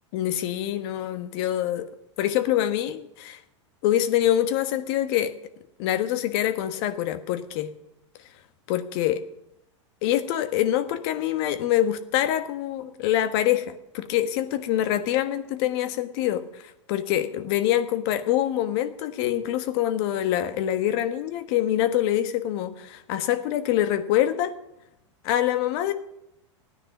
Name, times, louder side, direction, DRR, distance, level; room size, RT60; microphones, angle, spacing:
voice 1, 0.1-1.9 2.2-3.4 3.8-5.3 5.8-7.7 8.7-9.2 10.0-24.5 25.2-25.9, left 12 dB, 55° left, 10 dB, 1.3 m, -25 dB
14.0 x 9.7 x 6.0 m, 0.84 s
hypercardioid pair, 110°, 16 cm